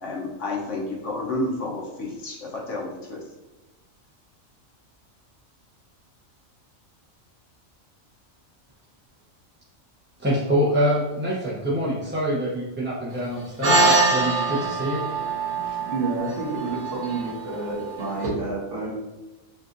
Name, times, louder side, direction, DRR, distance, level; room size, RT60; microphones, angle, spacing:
voice 1, 0.0-3.2, left 2 dB, 65° left, -1 dB, 1.1 m, -30 dB
voice 2, 10.2-15.0 15.5-15.8, equal, 10° right, -7 dB, 0.5 m, -25 dB
sound 1, 13.6-18.3, right 3 dB, 90° right, 1.8 m, -24 dB
voice 3, 15.8-18.9, right 3 dB, 60° right, -5 dB, 1.5 m, -29 dB
5.7 x 2.5 x 2.6 m, 1.1 s
omnidirectional pair, 1.4 m